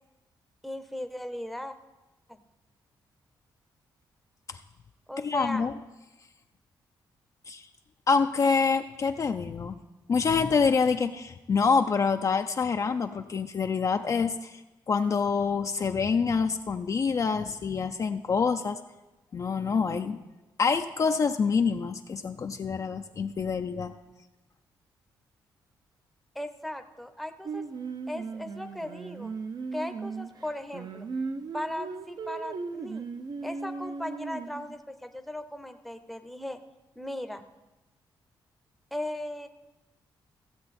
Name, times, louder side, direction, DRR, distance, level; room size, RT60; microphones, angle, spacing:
voice 1, 0.6-1.7 2.3-2.4 5.1-5.6 26.3-27.6 28.1-29.3 29.7-31.1 31.5-33.1 33.4-36.6 37.0-37.4 38.9-39.5, left 1 dB, ahead, 7 dB, 0.7 m, -37 dB
voice 2, 5.2-5.7 7.5-7.7 8.1-9.8 10.1-14.6 14.9-18.8 19.3-20.2 20.6-23.9, left 5 dB, 40° left, 6 dB, 0.4 m, -26 dB
Singing, 27.5-34.7, right 4 dB, 55° right, 0.7 m, -37 dB
15.0 x 7.7 x 4.2 m, 1.1 s
cardioid pair, 95°, 8 cm